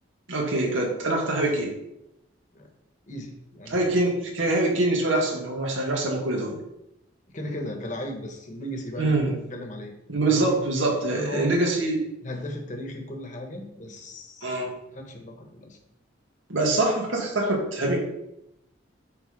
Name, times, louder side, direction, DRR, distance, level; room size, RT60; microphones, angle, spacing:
voice 1, 0.3-1.7 3.7-6.6 9.0-9.4 10.1-12.0 14.4-14.7 16.5-18.0, right 2 dB, 85° right, -1 dB, 2.0 m, -24 dB
voice 2, 3.1-4.0 7.3-9.2 9.5-9.9 10.3-11.5 12.2-14.5 14.9-15.8, left 1 dB, 40° left, 3 dB, 1.3 m, -36 dB
8.6 x 3.9 x 5.2 m, 0.86 s
head